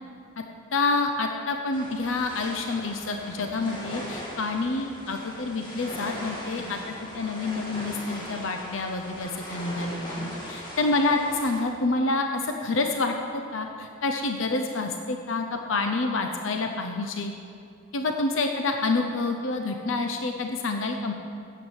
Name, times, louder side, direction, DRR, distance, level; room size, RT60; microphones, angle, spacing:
voice 1, 0.7-17.3 17.9-21.1, left 3 dB, 60° left, 4 dB, 0.7 m, -28 dB
sound 1, 1.7-11.6, equal, 20° left, 2.0 m, -39 dB
9.1 x 8.0 x 7.2 m, 2.5 s
head